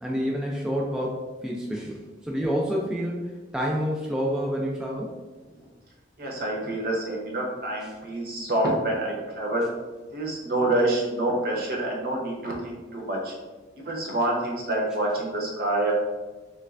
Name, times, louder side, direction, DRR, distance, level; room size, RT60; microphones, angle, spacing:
voice 1, 0.0-5.1, equal, 5° right, -3 dB, 0.3 m, -28 dB
voice 2, 6.2-9.7 10.1-13.3 13.8-15.9, right 1 dB, 55° right, -2 dB, 0.8 m, -27 dB
3.2 x 3.2 x 2.4 m, 1.2 s
head